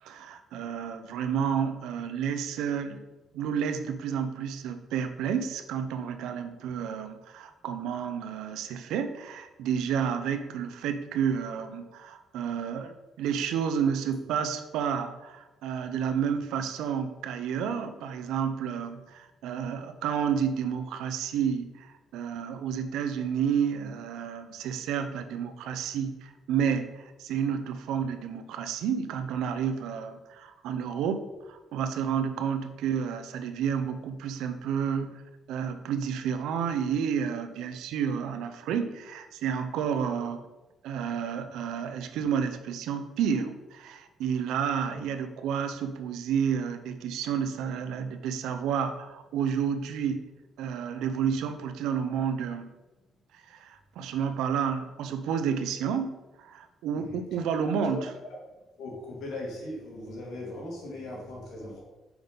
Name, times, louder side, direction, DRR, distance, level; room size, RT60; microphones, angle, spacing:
voice 1, 0.0-3.0 3.3-35.2 35.5-40.5 40.8-50.2 50.6-52.7 53.3-58.1, right 7 dB, 90° right, 9 dB, 0.5 m, -30 dB
voice 2, 57.6-58.0 58.8-61.8, left 1 dB, 80° left, -2 dB, 2.1 m, -39 dB
5.9 x 5.1 x 3.9 m, 1.1 s
cardioid pair, 90°, 0 cm